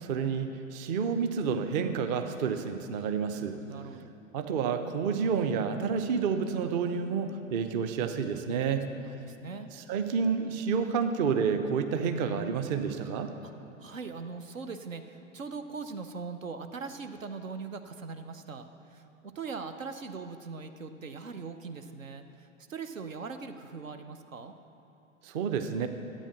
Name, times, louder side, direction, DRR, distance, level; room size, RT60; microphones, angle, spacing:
voice 1, 0.0-3.6 4.3-8.8 9.9-13.3 25.2-25.9, right 6 dB, 35° right, 8 dB, 0.7 m, -29 dB
voice 2, 3.6-4.1 8.9-9.7 13.4-13.5 13.8-24.5, right 4 dB, 75° right, 8 dB, 0.8 m, -41 dB
12.5 x 8.7 x 6.0 m, 3.0 s
figure-of-eight pair, 95°, 39 cm